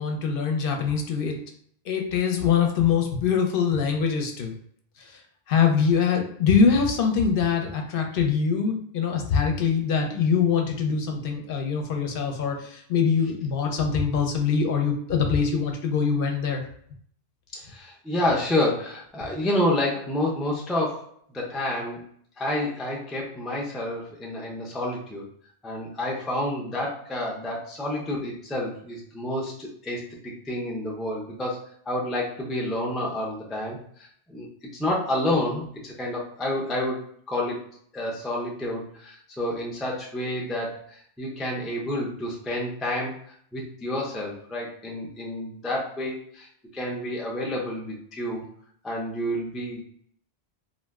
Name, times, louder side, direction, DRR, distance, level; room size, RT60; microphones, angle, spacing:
voice 1, 0.0-1.4 1.9-4.5 5.0-5.2 5.5-16.6, left 6 dB, 65° left, 2 dB, 0.7 m, -23 dB
voice 2, 17.5-22.0 22.4-25.3 25.6-31.6 31.9-34.5 34.7-37.6 37.9-46.5 46.7-48.4 48.8-49.8, left 1 dB, ahead, -3 dB, 0.3 m, -29 dB
2.5 x 2.1 x 3.4 m, 0.63 s
omnidirectional pair, 1.1 m